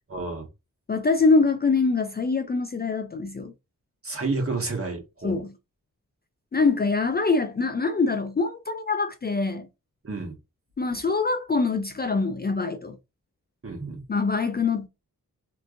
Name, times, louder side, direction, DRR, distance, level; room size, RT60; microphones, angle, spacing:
voice 1, 0.1-0.5 4.0-5.4 10.0-10.3 13.6-14.0, right 3 dB, 45° right, 1.5 m, -30 dB
voice 2, 0.9-3.5 5.2-5.5 6.5-9.7 10.8-13.0 14.1-14.9, left 4 dB, 30° left, 0.4 m, -24 dB
3.3 x 3.0 x 2.5 m
wide cardioid pair, 75°, 33 cm